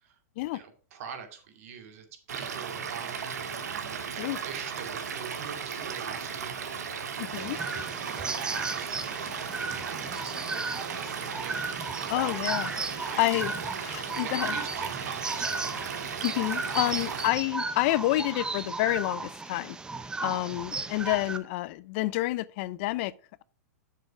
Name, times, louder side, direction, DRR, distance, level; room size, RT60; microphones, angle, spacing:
voice 1, 0.5-6.6 7.3-11.7 12.0-12.5 13.0-13.3 14.1-15.7 16.9-17.0, right 7 dB, 60° right, 2.4 m, -44 dB
Stream / Liquid, 2.3-17.3, right 6 dB, 85° right, 1.5 m, -36 dB
voice 2, 7.2-7.6 12.1-12.7 13.0-13.5 13.8-14.5 16.2-19.8 20.2-23.1, left 18 dB, 50° left, 0.4 m, -29 dB
sound 1, 7.3-21.4, right 3 dB, 10° right, 0.6 m, -35 dB
7.7 x 6.8 x 4.7 m
hypercardioid pair, 135°, 9 cm